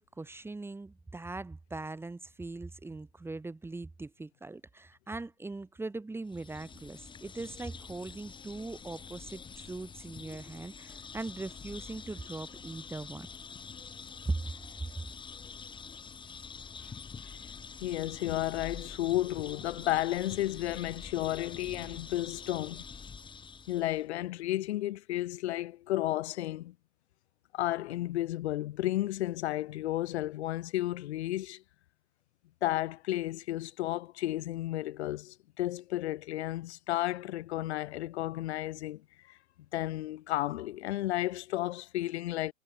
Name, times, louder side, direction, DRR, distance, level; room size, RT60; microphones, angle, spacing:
voice 1, 0.0-13.3 14.2-14.5 15.0-15.1, right 3 dB, 5° right, 2.5 m, -40 dB
sound 1, 6.3-24.0, left 5 dB, 10° left, 3.1 m, -46 dB
voice 2, 17.8-22.8 23.7-26.7 27.5-31.6 32.6-39.0 39.3-39.4 39.7-42.5, left 15 dB, 55° left, 3.0 m, -33 dB
hypercardioid pair, 125°, 40 cm